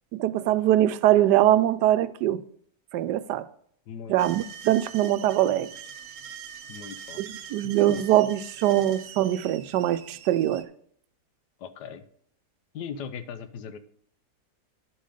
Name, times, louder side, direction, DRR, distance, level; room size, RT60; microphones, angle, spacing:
voice 1, 0.2-2.4 2.9-3.4 4.1-5.7 7.2-10.6, right 13 dB, 85° right, 1.2 m, -22 dB
voice 2, 3.9-4.5 6.7-8.0 11.6-12.0 12.7-13.8, left 7 dB, 85° left, 1.4 m, -39 dB
sound 1, 4.2-10.6, right 8 dB, 60° right, 0.9 m, -43 dB
11.5 x 5.5 x 5.0 m
omnidirectional pair, 1.8 m